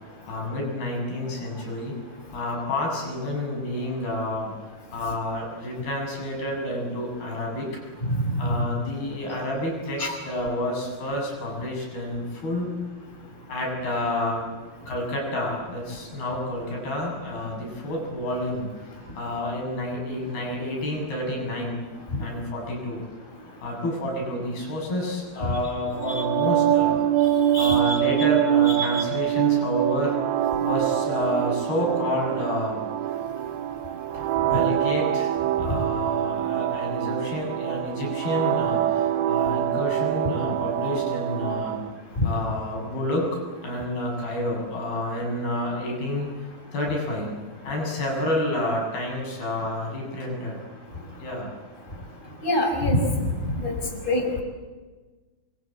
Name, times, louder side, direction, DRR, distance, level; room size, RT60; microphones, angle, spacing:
voice 1, 0.3-1.9 2.3-4.5 4.9-7.7 8.4-12.8 13.5-14.5 14.9-18.7 19.1-21.8 22.2-23.0 23.6-26.9 27.6-30.2 30.6-32.9 34.1-41.8 42.2-46.3 46.7-47.3 47.6-50.6 51.2-51.5, left 1 dB, 85° left, 0 dB, 9.7 m, -29 dB
sound 1, 26.0-41.9, right 12 dB, 85° right, 2.9 m, -24 dB
voice 2, 27.5-28.0 28.7-29.0 52.4-53.0 53.6-53.7 54.1-54.4, left 1 dB, 10° left, 2 dB, 5.3 m, -25 dB
28.0 x 24.0 x 8.7 m, 1.3 s
omnidirectional pair, 4.3 m